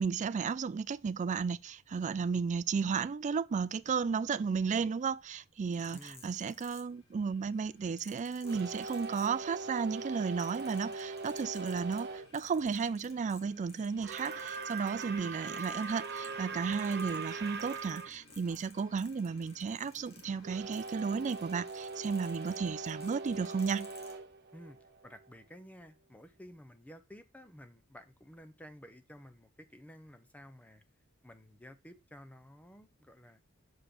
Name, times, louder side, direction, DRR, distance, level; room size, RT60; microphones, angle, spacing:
voice 1, 0.0-23.9, right 5 dB, 35° right, 0.3 m, -34 dB
sound 1, 5.6-22.7, left 1 dB, 50° left, 3.5 m, -62 dB
sound 2, 5.7-7.3 8.0-9.7 10.0-15.1 15.5-16.5 16.7-24.2 24.9-25.1, left 4 dB, 30° left, 1.8 m, -56 dB
voice 2, 5.9-6.3 24.5-24.8 25.0-30.8 31.2-33.4, equal, 5° left, 0.7 m, -53 dB
sound 3, 8.4-12.3 14.0-18.1 20.4-25.3, right 4 dB, 50° right, 0.7 m, -41 dB
6.6 x 5.0 x 4.3 m
head